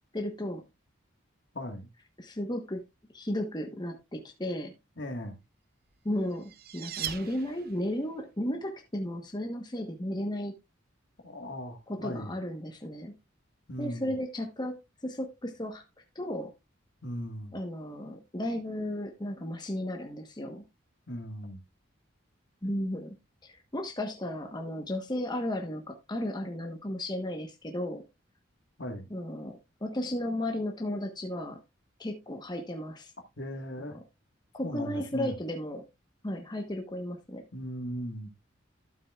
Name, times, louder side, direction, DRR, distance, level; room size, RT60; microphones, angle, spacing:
voice 1, 0.1-0.6 2.2-2.8 3.1-4.7 6.0-10.5 11.9-13.1 13.8-14.7 15.0-15.8 16.1-16.5 17.5-20.6 22.6-23.2 23.7-28.0 29.1-31.6 32.0-33.1 33.8-34.0 34.5-35.8 36.2-37.4, left 1 dB, 20° left, 1.1 m, -34 dB
voice 2, 1.5-1.9 5.0-5.4 11.2-12.3 13.7-14.1 17.0-17.5 21.1-21.6 28.8-29.1 33.4-34.0 34.6-35.3 37.5-38.3, equal, 60° left, 1.7 m, -38 dB
sound 1, 6.0-8.0, right 9 dB, 50° right, 0.8 m, -40 dB
12.5 x 7.7 x 2.4 m
head